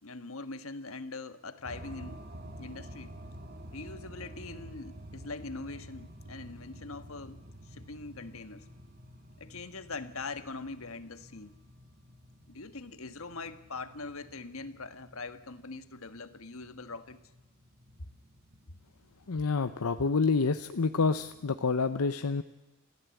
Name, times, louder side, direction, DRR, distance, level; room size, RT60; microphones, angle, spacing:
voice 1, 0.0-2.2 2.6-3.1 3.7-8.7 9.4-11.5 12.5-17.2, left 3 dB, 70° left, 1.5 m, -42 dB
sound 1, 1.6-21.4, equal, 45° right, 1.6 m, -50 dB
voice 2, 19.3-22.4, left 4 dB, 85° left, 0.8 m, -28 dB
29.5 x 15.0 x 8.3 m
head